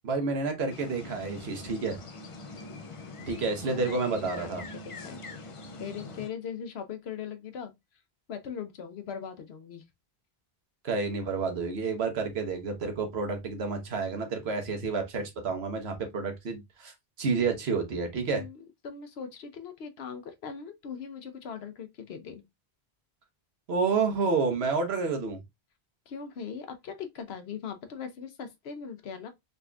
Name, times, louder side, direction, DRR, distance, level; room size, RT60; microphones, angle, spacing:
voice 1, 0.0-2.0 3.3-4.6 10.8-16.9 17.2-18.4 23.7-25.4, right 4 dB, 75° right, 1.2 m, -29 dB
sound 1, 0.7-6.3, left 2 dB, 40° left, 0.5 m, -43 dB
voice 2, 3.9-5.2 5.8-7.7 8.3-9.8 18.3-22.4 26.1-29.3, left 7 dB, 75° left, 1.0 m, -40 dB
3.9 x 3.3 x 2.2 m
omnidirectional pair, 1.1 m